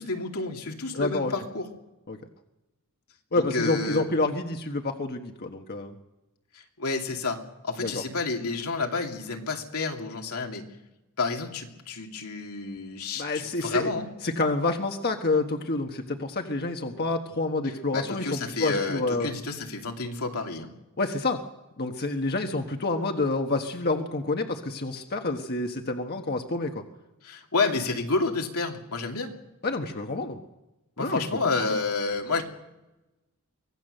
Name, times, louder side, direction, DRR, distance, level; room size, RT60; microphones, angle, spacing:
voice 1, 0.0-1.7 3.3-4.1 6.5-10.6 11.2-14.1 17.9-20.7 27.2-29.3 31.0-32.4, left 3 dB, 85° left, 2 dB, 2.7 m, -30 dB
voice 2, 0.9-1.3 2.1-2.2 3.3-6.0 7.8-7.9 13.2-13.9 14.2-19.3 21.0-21.4 21.8-26.8 29.6-30.4 31.0-31.2 31.6-31.8, left 2 dB, 45° left, 4 dB, 1.4 m, -28 dB
24.5 x 18.0 x 6.7 m, 0.99 s
head